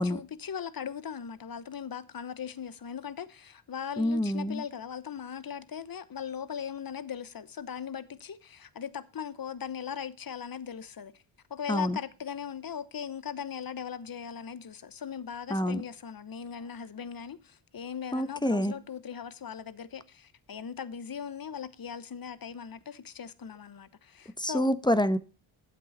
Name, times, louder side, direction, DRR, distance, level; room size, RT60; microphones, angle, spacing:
voice 1, 0.0-11.1 11.5-24.8, left 7 dB, 45° left, 1.0 m, -39 dB
voice 2, 4.0-4.6 11.7-12.0 15.5-15.8 18.1-18.7 24.4-25.2, equal, 10° left, 0.9 m, -27 dB
9.2 x 7.7 x 4.1 m
cardioid pair, 65°, 50 cm